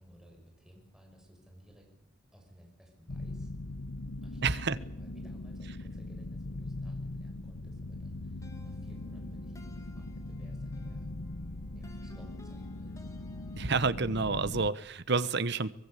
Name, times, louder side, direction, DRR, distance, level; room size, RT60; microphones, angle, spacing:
voice 1, 0.0-1.9 2.3-3.5 4.2-11.1 11.7-12.9, equal, 5° right, 1 dB, 6.4 m, -57 dB
sound 1, 3.1-14.7, left 2 dB, 80° left, 1.3 m, -40 dB
voice 2, 4.4-4.8 13.5-15.7, right 4 dB, 60° right, 15 dB, 1.1 m, -29 dB
sound 2, 8.4-14.2, left 1 dB, 15° left, 2.5 m, -58 dB
24.0 x 21.5 x 8.4 m, 0.75 s
head